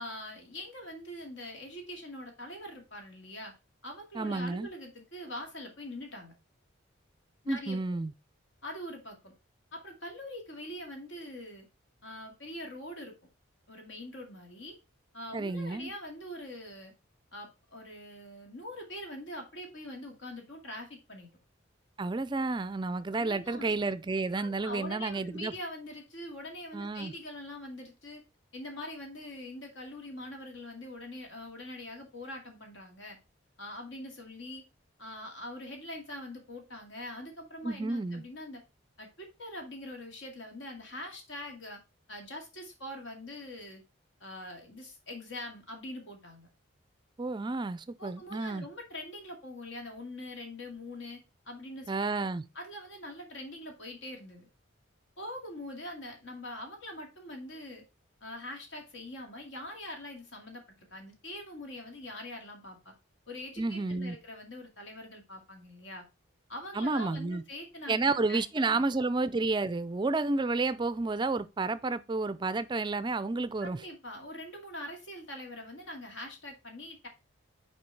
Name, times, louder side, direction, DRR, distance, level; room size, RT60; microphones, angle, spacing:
voice 1, 0.0-3.5 3.8-6.4 7.4-7.8 8.6-9.3 9.7-11.7 12.0-13.2 13.7-14.8 15.1-16.9 17.3-21.3 23.1-23.7 24.4-28.2 28.5-33.2 33.6-34.6 35.0-38.6 39.0-41.8 42.1-43.8 44.2-46.5 48.0-51.2 51.5-52.1 52.5-54.5 55.2-57.8 58.2-60.6 60.9-62.9 63.3-66.0 66.5-68.4 68.7-68.8 73.6-77.1, left 1 dB, 70° left, 2.2 m, -43 dB
voice 2, 4.1-4.7 7.5-8.1 15.3-15.9 22.0-25.5 26.7-27.1 37.6-38.2 47.2-48.7 51.9-52.4 63.6-64.2 66.7-67.4 67.9-73.8, right 3 dB, 20° right, 0.4 m, -31 dB
6.2 x 4.5 x 4.5 m
head